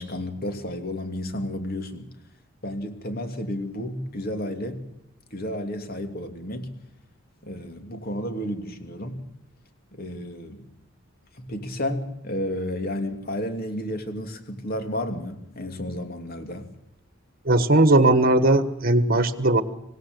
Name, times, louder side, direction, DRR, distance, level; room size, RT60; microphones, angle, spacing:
voice 1, 0.0-2.1 2.6-4.8 5.3-6.7 7.4-9.2 9.9-10.7 11.3-16.7, left 1 dB, 50° left, 6 dB, 2.9 m, -32 dB
voice 2, 17.4-19.6, right 2 dB, 45° right, 12 dB, 1.5 m, -18 dB
26.0 x 17.0 x 8.0 m, 0.79 s
head